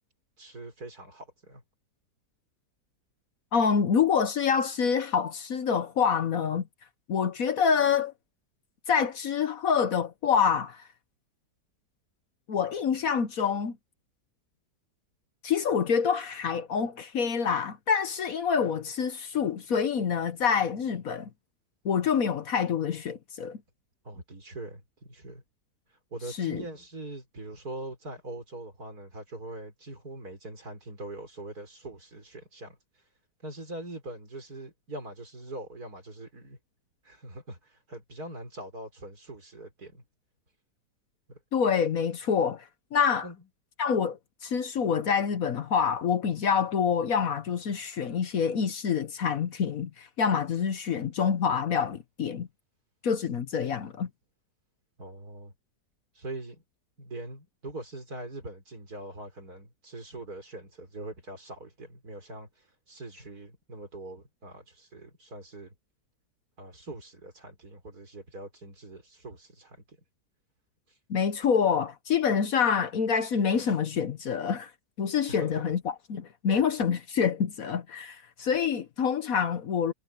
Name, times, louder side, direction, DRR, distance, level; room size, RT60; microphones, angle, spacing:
voice 1, 0.4-1.6 24.0-25.4 26.1-32.8 33.4-36.6 37.0-40.0 41.3-41.4 43.2-43.5 55.0-55.5 56.1-56.6 57.0-65.7 66.6-70.0 75.3-75.7, right 2 dB, 60° right, 6.1 m, -42 dB
voice 2, 3.5-6.6 7.1-8.1 8.9-10.8 12.5-13.8 15.4-21.3 21.8-23.6 26.4-26.6 41.5-42.6 42.9-43.3 43.8-52.5 53.0-54.1 71.1-74.7 75.0-79.9, left 7 dB, 60° left, 1.3 m, -26 dB
omnidirectional pair, 1.8 m